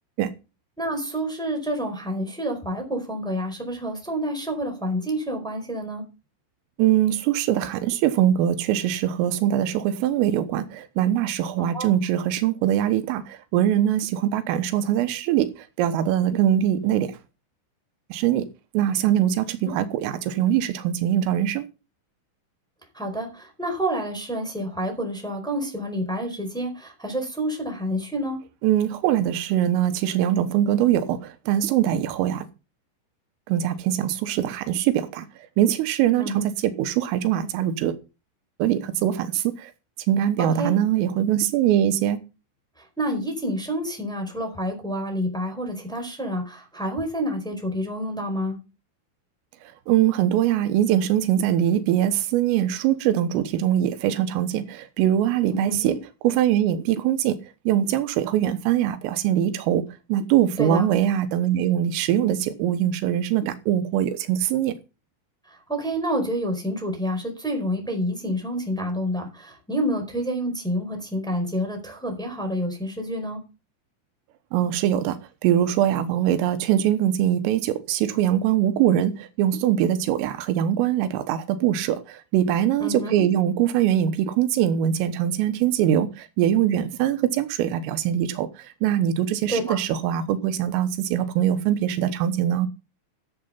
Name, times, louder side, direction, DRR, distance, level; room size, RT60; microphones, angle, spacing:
voice 1, 0.8-6.0 11.7-11.9 22.9-28.4 36.2-36.4 40.4-40.7 42.8-48.6 55.5-55.9 60.6-60.8 65.5-73.4 82.8-83.1 89.5-89.8, equal, ahead, 3.8 m, -28 dB
voice 2, 6.8-17.2 18.1-18.5 18.7-21.7 28.6-32.5 33.5-35.3 35.6-38.0 38.6-39.7 40.1-42.2 49.9-56.0 56.2-64.8 74.5-92.7, right 11 dB, 90° right, 3.8 m, -22 dB
14.0 x 7.7 x 5.6 m
omnidirectional pair, 5.8 m